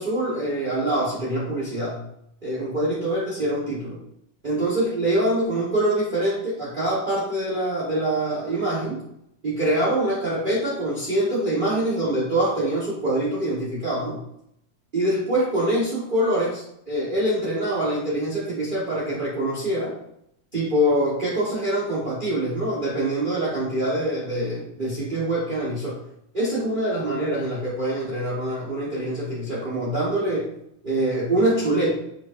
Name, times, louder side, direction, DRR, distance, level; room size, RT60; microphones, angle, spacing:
voice 1, 0.0-2.0 2.4-4.0 4.4-9.0 9.4-14.2 14.9-19.9 20.5-26.0 26.3-30.5 30.8-31.9, right 1 dB, 30° right, -7 dB, 1.5 m, -24 dB
6.8 x 6.2 x 2.7 m, 0.76 s
omnidirectional pair, 2.0 m